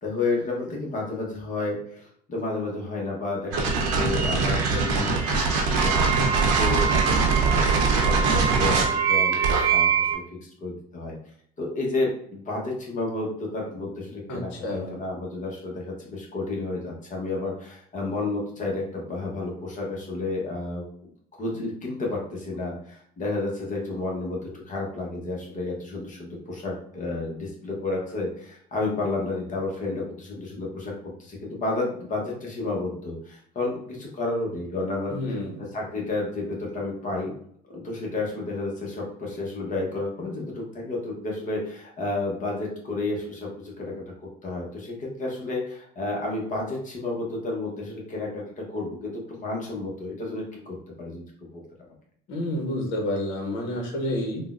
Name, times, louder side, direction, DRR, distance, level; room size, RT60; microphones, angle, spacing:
voice 1, 0.0-6.0 6.3-10.2 10.6-11.2 11.6-21.1 21.4-37.3 37.7-51.2 51.5-51.6, left 2 dB, 35° left, -2 dB, 1.0 m, -31 dB
sound 1, 3.5-10.1, right 5 dB, 85° right, 0.8 m, -22 dB
Wind instrument woodwind instrument, 5.7-10.2, right 7 dB, 25° right, 0.4 m, -28 dB
voice 2, 14.3-14.9 35.1-35.6 52.3-54.5, left 1 dB, 65° left, 1 dB, 1.0 m, -29 dB
3.6 x 2.2 x 2.4 m, 0.63 s
supercardioid pair, 100°, 21 cm